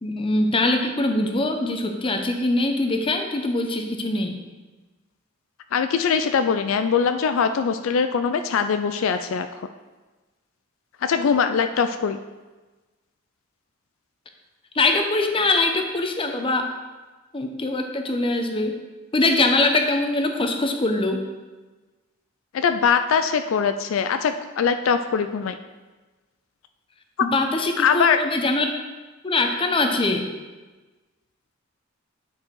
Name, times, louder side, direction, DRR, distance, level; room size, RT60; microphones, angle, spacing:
voice 1, 0.0-4.4 14.7-16.7 17.3-18.8 19.1-21.3 27.2-28.7 29.2-30.3, left 2 dB, 25° left, 4 dB, 0.7 m, -22 dB
voice 2, 5.7-9.7 11.0-12.2 22.5-25.6 27.2-27.3 27.8-28.2, left 6 dB, 70° left, 9 dB, 0.4 m, -22 dB
9.6 x 4.7 x 4.6 m, 1.2 s
head